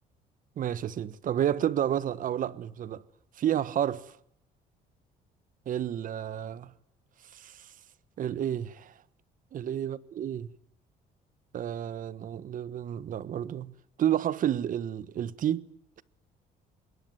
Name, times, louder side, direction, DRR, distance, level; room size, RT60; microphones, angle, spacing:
voice 1, 0.6-3.0 3.4-4.1 5.7-6.7 7.3-7.7 8.2-8.9 9.5-10.5 11.5-13.7 14.0-15.6, right 10 dB, 55° right, 1.3 m, -30 dB
26.0 x 21.5 x 9.3 m
cardioid pair, 110°, 17 cm